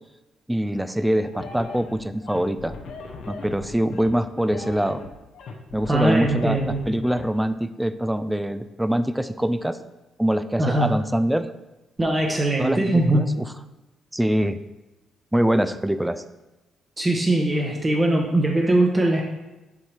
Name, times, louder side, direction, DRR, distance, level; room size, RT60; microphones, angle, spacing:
voice 1, 0.5-2.8 3.3-5.0 5.7-9.8 10.2-11.5 12.6-13.5 14.1-14.6 15.3-16.2, right 1 dB, 5° right, 11 dB, 0.4 m, -24 dB
sound 1, 1.2-7.2, left 3 dB, 70° left, 0.9 m, -38 dB
voice 2, 5.9-6.8 10.6-10.9 12.0-13.2 17.0-19.2, right 1 dB, 20° right, 0 dB, 0.9 m, -21 dB
7.1 x 4.6 x 3.4 m, 1.0 s
cardioid pair, 90°, 0 cm